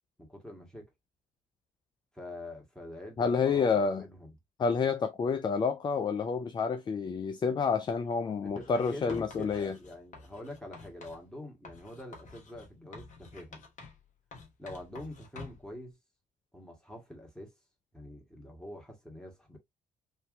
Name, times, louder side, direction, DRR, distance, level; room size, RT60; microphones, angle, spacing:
voice 1, 0.2-0.9 2.1-4.3 8.4-13.6 14.6-16.0 16.5-17.5 17.9-19.6, left 1 dB, 5° left, 1.7 m, -45 dB
voice 2, 3.2-4.0 4.6-9.8, left 5 dB, 25° left, 0.4 m, -29 dB
Writing, 8.6-11.2 11.6-14.1 14.3-15.7, left 3 dB, 40° left, 1.1 m, -49 dB
3.6 x 2.7 x 2.6 m
figure-of-eight pair, 50°, 19 cm